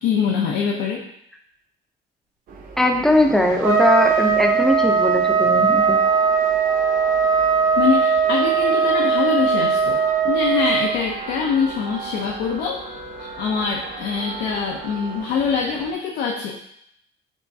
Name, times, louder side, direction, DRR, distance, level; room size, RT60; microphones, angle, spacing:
voice 1, 0.0-1.1 7.8-12.8 13.2-16.6, left 6 dB, 80° left, -1 dB, 0.5 m, -24 dB
sound 1, 2.5-15.9, right 5 dB, 55° right, 0.7 m, -38 dB
voice 2, 2.8-6.0, left 1 dB, ahead, 3 dB, 0.5 m, -19 dB
Trumpet, 3.6-10.9, right 6 dB, 80° right, 1.1 m, -19 dB
4.6 x 3.1 x 2.7 m, 0.73 s
cardioid pair, 110°, 17 cm